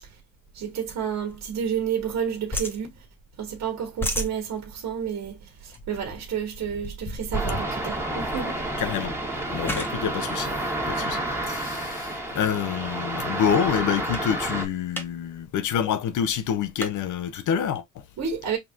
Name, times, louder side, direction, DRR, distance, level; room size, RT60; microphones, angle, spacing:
voice 1, 0.5-2.9 3.4-8.5 18.2-18.6, right 7 dB, 60° right, 1.5 m, -30 dB
sound 1, 1.3-2.2 2.5-3.5 3.8-11.6 12.2-12.5 12.9-13.0 13.2-13.8 14.1-14.3 14.6-15.1 15.4-15.5 15.7-16.9, equal, 5° left, 1.1 m, -35 dB
sound 2, 7.3-14.7, right 1 dB, 10° right, 1.4 m, -30 dB
voice 2, 8.8-9.1 9.5-18.0, left 8 dB, 80° left, 0.7 m, -27 dB
5.2 x 2.9 x 2.4 m
cardioid pair, 90°, 30 cm